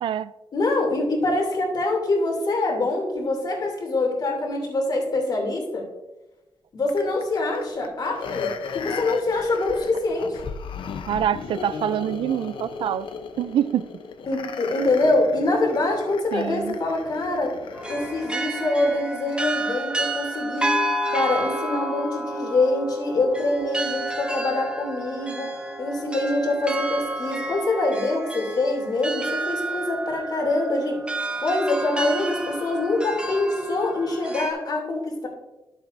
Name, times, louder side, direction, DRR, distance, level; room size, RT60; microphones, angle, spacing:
voice 1, 0.0-0.3 11.1-13.1 13.4-13.9 16.3-16.8, right 10 dB, 85° right, 0.4 m, -25 dB
voice 2, 0.5-5.9 6.7-10.4 14.3-17.5 17.9-20.7 21.1-25.5 25.8-31.0 31.4-35.3, left 2 dB, 55° left, 2.8 m, -24 dB
sound 1, 6.9-18.3 18.8-18.9, left 5 dB, 80° left, 0.7 m, -36 dB
sound 2, 17.7-34.5, right 1 dB, 10° right, 1.0 m, -30 dB
11.5 x 7.5 x 2.6 m
cardioid pair, 110°, 9 cm